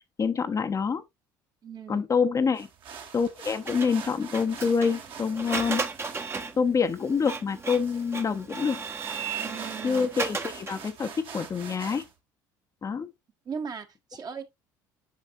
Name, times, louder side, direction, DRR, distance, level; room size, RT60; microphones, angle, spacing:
voice 1, 0.2-1.0 1.9-2.7 3.1-5.8 6.6-8.8 9.8-12.0 12.8-13.1, left 5 dB, 30° left, 0.7 m, -26 dB
voice 2, 1.6-2.1 9.4-10.1 13.4-14.5, right 6 dB, 40° right, 1.3 m, -38 dB
sound 1, 2.5-12.1, right 6 dB, 60° right, 1.8 m, -45 dB
Printer, 3.7-10.9, right 4 dB, 25° right, 0.9 m, -35 dB
8.2 x 5.3 x 2.5 m
hypercardioid pair, 65°, 10 cm